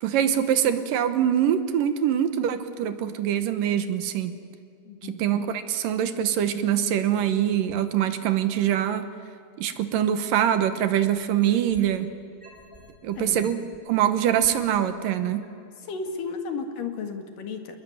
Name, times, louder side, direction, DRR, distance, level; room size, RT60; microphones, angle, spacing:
voice 1, 0.0-4.4 5.0-9.1 9.6-12.1 13.0-15.5, right 10 dB, 70° right, 10 dB, 2.6 m, -24 dB
voice 2, 4.9-5.2 13.2-13.5 15.8-17.8, left 5 dB, 60° left, 5 dB, 3.5 m, -34 dB
sound 1, 10.4-12.0 12.4-14.8 15.4-15.5, equal, 15° left, 5.0 m, -50 dB
27.5 x 21.0 x 9.5 m, 2.3 s
omnidirectional pair, 4.6 m